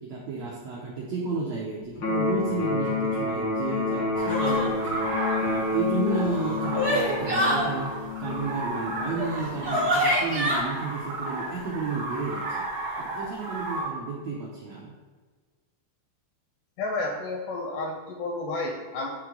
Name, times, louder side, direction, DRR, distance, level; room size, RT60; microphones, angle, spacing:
voice 1, 0.0-5.0 5.4-12.4 13.0-14.9, right 4 dB, 90° right, -4 dB, 1.5 m, -32 dB
Electric guitar, 2.0-9.9, left 3 dB, 65° left, 1.1 m, -29 dB
sound 1, 4.1-13.8, right 2 dB, 65° right, 1.7 m, -34 dB
sound 2, 4.3-4.7 6.1-7.6 9.2-9.3 9.6-10.6, equal, 45° right, 0.9 m, -25 dB
voice 2, 16.8-19.1, left 2 dB, 85° left, 1 dB, 1.9 m, -31 dB
9.2 x 3.1 x 3.7 m, 1.4 s
omnidirectional pair, 4.2 m